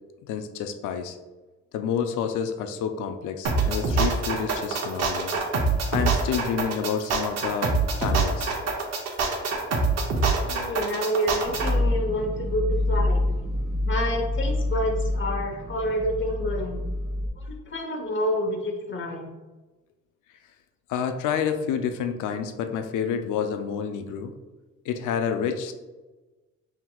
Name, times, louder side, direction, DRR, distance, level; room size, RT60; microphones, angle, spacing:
voice 1, 0.3-1.2 1.7-5.3 5.9-7.7 8.0-8.5 20.9-24.3 24.9-25.7, left 7 dB, 85° left, 7 dB, 0.5 m, -29 dB
sound 1, 3.4-11.7, right 4 dB, 60° right, 0.8 m, -25 dB
voice 2, 10.4-13.2 13.8-16.8 17.4-19.3, equal, 40° left, 2 dB, 1.0 m, -28 dB
sound 2, 11.4-17.3, left 1 dB, ahead, 1.0 m, -27 dB
5.7 x 2.9 x 2.3 m, 1.2 s
cardioid pair, 90°, 30 cm